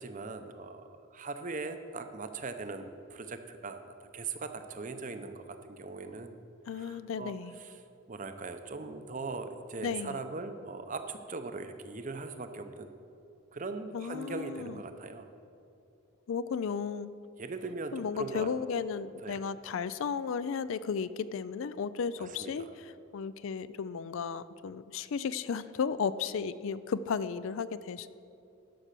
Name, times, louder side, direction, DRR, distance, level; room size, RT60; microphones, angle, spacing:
voice 1, 0.0-6.4 6.7-7.8 8.1-12.9 13.5-15.3 17.4-18.5 19.2-19.5 22.2-22.7, right 3 dB, 35° right, 8 dB, 0.6 m, -40 dB
voice 2, 6.7-7.5 9.8-10.2 13.9-14.8 16.3-17.1 17.9-22.7 23.1-28.1, left 6 dB, 65° left, 15 dB, 0.4 m, -34 dB
11.5 x 6.0 x 6.7 m, 2.6 s
head